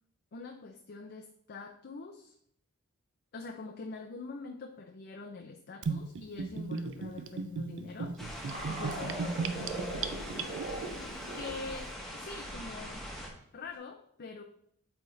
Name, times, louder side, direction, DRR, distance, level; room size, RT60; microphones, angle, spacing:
voice 1, 0.3-2.3 3.3-8.2 8.7-10.6 11.3-13.0 13.5-14.4, left 3 dB, 50° left, 4 dB, 0.5 m, -44 dB
Gurgling / Bathtub (filling or washing), 5.8-10.9, right 4 dB, 60° right, 0.4 m, -36 dB
sound 1, 8.2-13.3, equal, ahead, 1.1 m, -42 dB
sound 2, 8.5-11.7 12.1-12.2 13.7-13.8, right 2 dB, 45° right, 1.4 m, -41 dB
8.2 x 4.1 x 3.2 m, 0.69 s
head